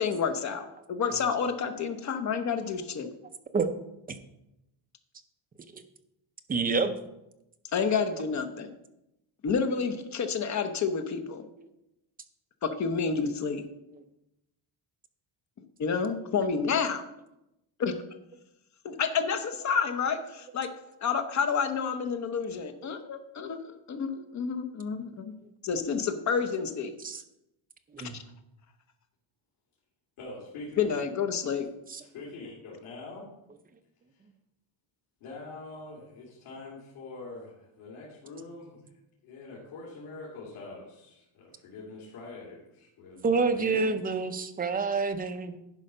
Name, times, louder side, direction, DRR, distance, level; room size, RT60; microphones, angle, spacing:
voice 1, 0.0-3.1 7.7-8.7 9.4-11.4 12.6-13.6 15.8-17.0 17.8-17.9 18.8-20.7 21.0-23.6 23.9-25.3 25.6-26.9 28.0-28.2 30.8-31.7, left 6 dB, 35° left, 8 dB, 0.8 m, -29 dB
voice 2, 6.5-6.9 27.0-27.2 27.9-28.2 31.9-32.0 43.2-45.6, right 4 dB, 20° right, 7 dB, 0.5 m, -27 dB
voice 3, 30.2-30.9 32.0-33.3 35.2-38.8 39.2-43.9, left 3 dB, 85° left, -5 dB, 2.4 m, -44 dB
11.0 x 4.9 x 5.5 m, 0.89 s
cardioid pair, 170°, 48 cm